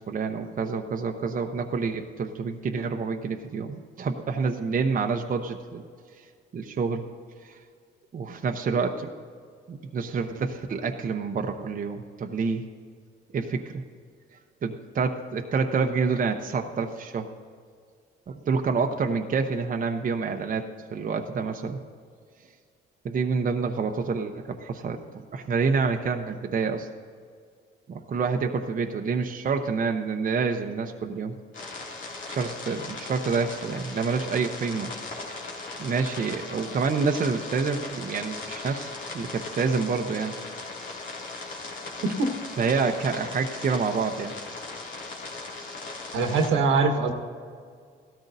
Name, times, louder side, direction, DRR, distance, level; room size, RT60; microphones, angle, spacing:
voice 1, 0.1-5.8 6.5-7.0 7.4-7.6 8.1-9.1 9.7-12.6 13.3-13.8 14.6-17.3 18.3-20.6 20.9-21.8 23.0-26.9 27.9-31.3 32.3-35.4 35.8-40.4 42.6-44.3, right 5 dB, 45° right, 4 dB, 0.8 m, -28 dB
sound 1, 31.5-46.5, left 3 dB, 70° left, 2.6 m, -38 dB
voice 2, 46.1-47.1, right 4 dB, 85° right, 4 dB, 1.4 m, -22 dB
16.5 x 13.0 x 2.7 m, 2.1 s
cardioid pair, 90°, 20 cm